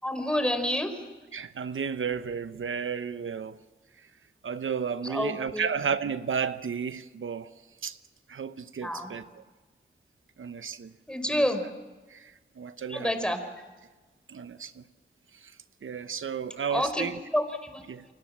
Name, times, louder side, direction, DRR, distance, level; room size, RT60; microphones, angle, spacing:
voice 1, 0.0-1.0 5.1-5.7 8.8-9.1 11.1-11.6 12.9-13.4 16.7-17.0 17.3-17.8, equal, 5° left, 5.0 m, -28 dB
voice 2, 1.3-3.6 4.4-7.5 7.8-8.0 8.3-9.4 10.4-10.9 11.2-11.5 12.1-13.3 14.3-14.8 15.3-15.6 15.8-17.2 17.9-18.0, right 6 dB, 80° right, 1.0 m, -33 dB
29.5 x 24.5 x 7.6 m
cardioid pair, 60°, 20 cm